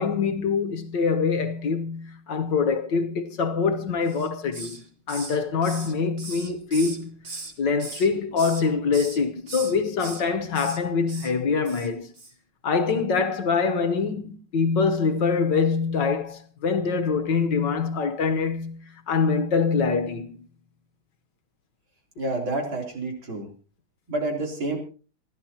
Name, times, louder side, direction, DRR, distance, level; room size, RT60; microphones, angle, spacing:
voice 1, 0.0-7.2 7.6-12.1 12.6-20.5, left 5 dB, 60° left, 1.7 m, -24 dB
Hiss, 4.1-4.8 5.1-7.5 7.8-8.6 8.9-9.2 9.5-10.2 10.5-10.8 11.1-11.3 11.6-11.9 12.1-12.3, right 3 dB, 30° right, 1.9 m, -38 dB
voice 2, 22.2-23.5 24.1-24.8, right 2 dB, 70° right, 4.3 m, -29 dB
27.5 x 12.5 x 2.9 m
omnidirectional pair, 2.3 m